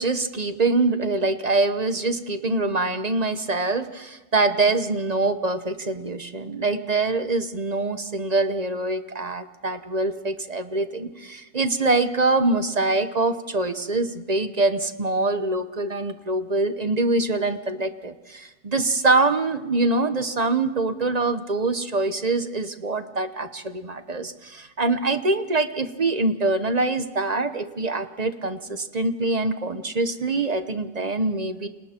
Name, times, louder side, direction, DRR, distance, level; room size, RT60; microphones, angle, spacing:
voice 1, 0.0-31.7, right 2 dB, 30° right, 10 dB, 0.9 m, -24 dB
29.5 x 26.0 x 4.4 m, 1.2 s
omnidirectional pair, 1.6 m